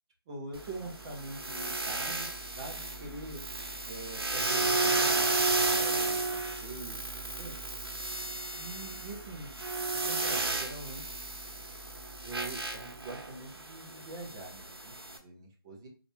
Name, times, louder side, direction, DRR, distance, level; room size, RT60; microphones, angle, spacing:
voice 1, 0.3-2.3 2.6-3.4 3.9-6.2 6.6-7.1 7.4-7.6 8.5-9.5 9.9-11.0 12.2-15.9, right 2 dB, 10° right, -1 dB, 0.5 m, -43 dB
sound 1, 0.5-15.2, right 3 dB, 80° right, 1.0 m, -33 dB
4.0 x 2.4 x 3.3 m, 0.35 s
figure-of-eight pair, 165°, 13 cm